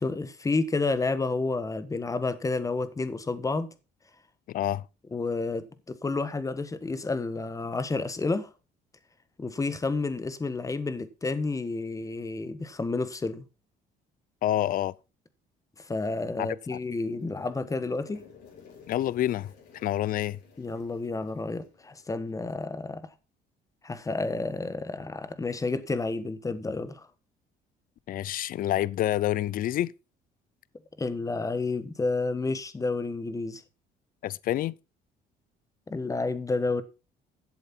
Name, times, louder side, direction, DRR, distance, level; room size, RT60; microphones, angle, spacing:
voice 1, 0.0-3.7 5.1-8.5 9.4-13.4 15.8-18.2 20.6-23.0 23.8-27.1 31.0-33.6 35.9-36.8, left 3 dB, 20° left, 1.4 m, -30 dB
voice 2, 4.5-4.8 14.4-14.9 16.4-16.8 18.9-19.5 19.8-20.4 28.1-29.9 34.2-34.7, left 13 dB, 55° left, 0.5 m, -28 dB
sound 1, 16.6-22.5, left 5 dB, 75° left, 6.2 m, -55 dB
11.5 x 7.8 x 4.3 m
cardioid pair, 110°, 17 cm